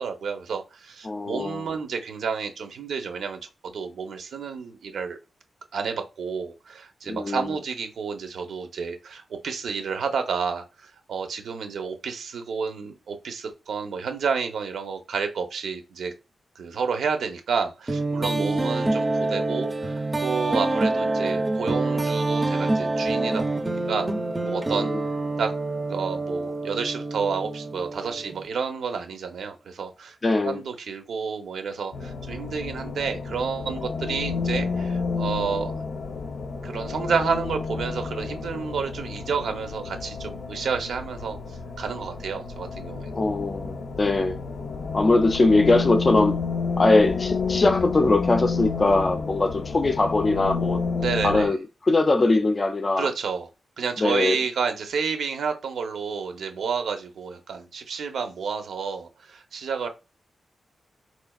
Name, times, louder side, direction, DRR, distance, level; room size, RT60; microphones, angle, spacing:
voice 1, 0.0-5.2 5.7-16.1 16.6-24.1 24.4-24.9 25.4-25.5 25.9-30.2 30.4-35.8 36.6-41.4 41.8-43.2 51.0-51.5 53.0-53.5 53.8-59.9, right 5 dB, 80° right, 0.7 m, -30 dB
voice 2, 1.0-1.7 7.1-7.6 18.2-18.6 24.7-25.0 30.2-30.6 43.2-44.4 44.9-46.4 46.8-50.8 51.2-53.1 54.0-54.4, left 2 dB, 30° left, 0.4 m, -22 dB
sound 1, 17.9-28.5, right 2 dB, 20° right, 0.6 m, -26 dB
sound 2, 31.9-51.5, left 4 dB, 85° left, 0.6 m, -30 dB
4.1 x 3.2 x 2.3 m
wide cardioid pair, 125°, 0 cm